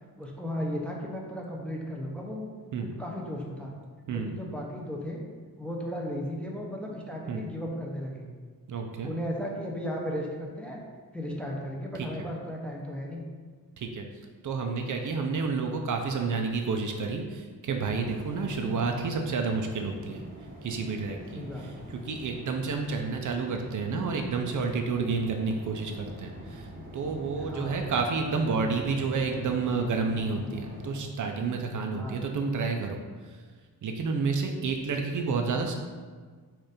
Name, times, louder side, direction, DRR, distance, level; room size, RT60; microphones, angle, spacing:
voice 1, 0.2-2.5 2.8-3.7 4.1-5.2 5.6-8.3 9.0-10.8 11.1-13.2 21.3-21.8 27.4-27.8 31.9-32.2, equal, 5° left, -2 dB, 0.5 m, -35 dB
voice 2, 8.7-9.1 12.0-12.1 13.8-14.1 14.4-20.2 20.6-21.4 21.9-26.7 26.9-33.0 33.3-33.4 33.8-35.8, right 4 dB, 55° right, 3 dB, 0.5 m, -30 dB
sound 1, 17.7-31.0, equal, 25° right, 0.8 m, -43 dB
4.4 x 2.5 x 4.9 m, 1.5 s
wide cardioid pair, 135°, 36 cm